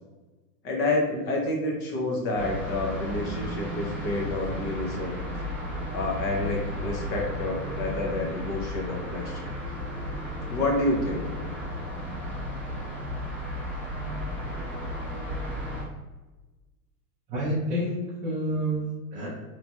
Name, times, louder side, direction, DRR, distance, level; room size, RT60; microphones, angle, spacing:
voice 1, 0.6-5.2 5.9-9.5 10.5-11.2, left 2 dB, 25° left, -1 dB, 0.6 m, -28 dB
sound 1, 2.3-15.8, equal, 5° left, 0.9 m, -34 dB
voice 2, 17.3-19.3, equal, 15° right, -10 dB, 0.5 m, -29 dB
3.1 x 2.4 x 2.2 m, 1.2 s
hypercardioid pair, 130°, 47 cm